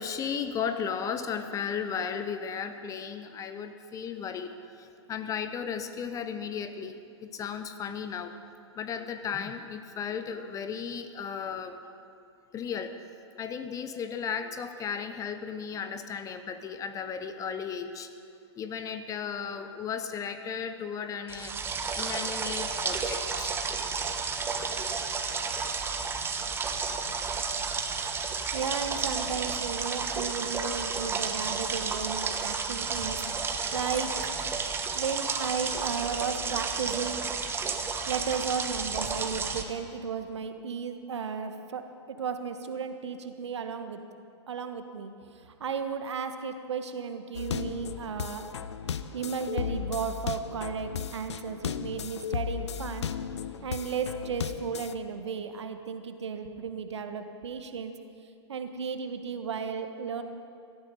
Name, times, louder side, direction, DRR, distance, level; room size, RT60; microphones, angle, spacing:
voice 1, 0.0-4.5 4.8-8.4 8.8-11.8 12.5-12.9 13.4-18.1 18.6-21.5 22.0-23.6, left 7 dB, 20° left, 9 dB, 0.9 m, -35 dB
sound 1, 21.3-39.6, right 5 dB, 15° right, 1.2 m, -32 dB
voice 2, 28.5-33.2 33.7-34.3 34.9-37.2 38.1-44.0 44.5-48.5 49.1-53.1 53.6-57.9 58.5-60.2, right 6 dB, 70° right, 7 dB, 1.4 m, -34 dB
sound 2, 47.3-54.9, left 8 dB, 70° left, 0.7 m, -35 dB
17.5 x 13.0 x 5.4 m, 2.4 s
figure-of-eight pair, 110°, 15 cm